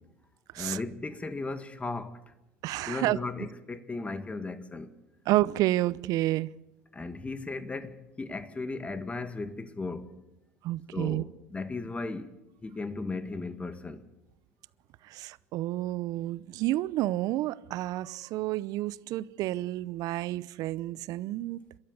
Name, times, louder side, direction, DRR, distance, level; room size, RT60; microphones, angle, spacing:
voice 1, 0.6-2.2 2.9-4.9 6.9-10.2 10.9-12.3 12.6-14.0, left 3 dB, 15° left, 2.0 m, -36 dB
voice 2, 2.6-3.2 5.3-6.5 10.6-11.2 15.0-21.6, right 16 dB, 55° right, 0.8 m, -30 dB
29.5 x 13.0 x 8.2 m
hypercardioid pair, 80°, 7 cm